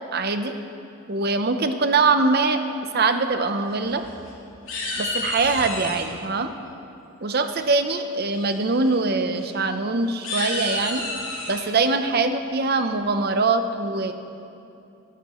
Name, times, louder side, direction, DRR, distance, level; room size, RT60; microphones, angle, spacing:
voice 1, 0.1-0.6 1.1-2.6 2.9-4.0 5.0-6.5 7.2-11.1 11.5-14.1, right 3 dB, 45° right, 8 dB, 0.6 m, -23 dB
sound 1, 3.7-4.3 4.7-6.1 7.5-7.9 8.3-8.6 8.8-8.9 9.3-9.5 10.1-11.7, left 2 dB, 65° left, 3.0 m, -30 dB
17.5 x 12.5 x 3.0 m, 2.8 s
head